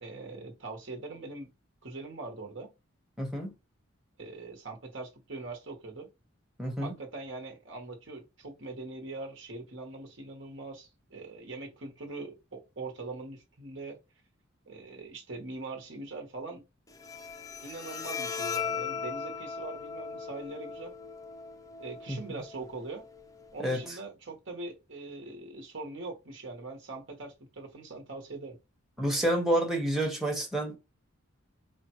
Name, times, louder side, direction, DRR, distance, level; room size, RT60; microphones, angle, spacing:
voice 1, 0.0-1.5 1.8-2.7 4.2-6.1 6.8-14.0 14.7-16.6 17.6-20.9 21.8-23.1 23.5-28.6, right 3 dB, 65° right, 1.1 m, -42 dB
voice 2, 3.2-3.5 6.6-6.9 22.1-22.2 23.6-24.0 29.0-30.8, right 1 dB, ahead, 0.8 m, -29 dB
Bowed string instrument, 16.9-23.9, left 6 dB, 15° left, 0.4 m, -39 dB
4.9 x 2.2 x 2.9 m
head